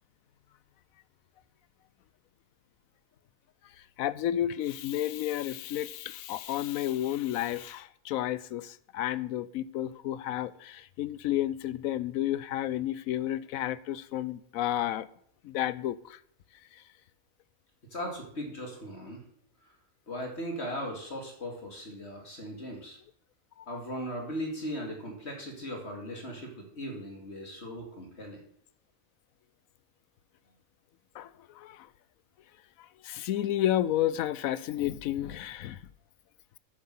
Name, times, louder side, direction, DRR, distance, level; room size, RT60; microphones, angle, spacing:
voice 1, 4.0-15.1 15.4-16.2 23.7-23.8 31.1-31.3 31.5-31.9 33.0-35.8, left 12 dB, 90° left, 1.1 m, -31 dB
voice 2, 17.9-19.2 20.1-23.0 23.7-28.4, equal, 55° left, 2.4 m, -38 dB
9.3 x 7.9 x 7.5 m
omnidirectional pair, 1.4 m